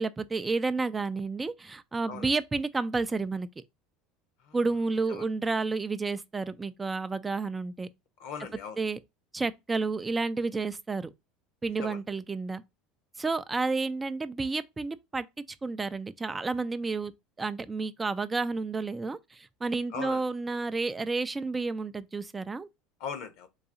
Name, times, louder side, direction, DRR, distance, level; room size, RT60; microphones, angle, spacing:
voice 1, 0.0-3.5 4.5-7.9 8.8-9.0 9.3-11.1 11.6-12.6 13.2-15.2 15.6-17.1 17.4-22.7, right 3 dB, 20° right, 0.3 m, -31 dB
voice 2, 8.2-8.8 11.8-12.0 19.9-20.2 23.0-23.5, left 7 dB, 65° left, 0.8 m, -39 dB
3.9 x 2.7 x 2.5 m
hypercardioid pair, 85°, 0 cm